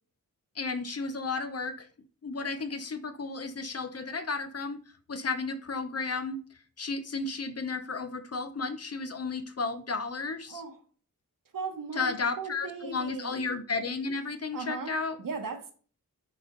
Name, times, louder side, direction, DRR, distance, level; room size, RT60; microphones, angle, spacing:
voice 1, 0.5-1.9 2.2-4.8 5.1-6.4 6.8-10.6 11.9-15.2, left 4 dB, 45° left, 0.8 m, -33 dB
voice 2, 11.5-12.1 12.4-13.5 14.5-15.7, right 4 dB, 70° right, 1.3 m, -37 dB
8.7 x 4.4 x 3.8 m
wide cardioid pair, 130°, 34 cm